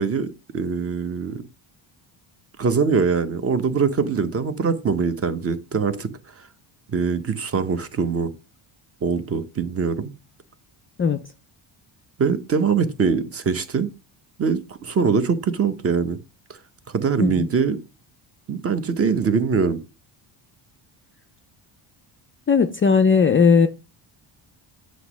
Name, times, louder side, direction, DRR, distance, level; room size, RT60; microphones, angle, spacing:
voice 1, 0.0-1.4 2.6-6.1 6.4-6.5 6.9-8.3 9.0-10.1 12.2-13.9 14.4-16.2 16.9-17.8 18.5-19.8, right 5 dB, 30° right, 0.8 m, -23 dB
voice 2, 22.5-23.7, left 5 dB, 30° left, 0.3 m, -17 dB
7.9 x 3.0 x 6.2 m
cardioid pair, 115°, 50 cm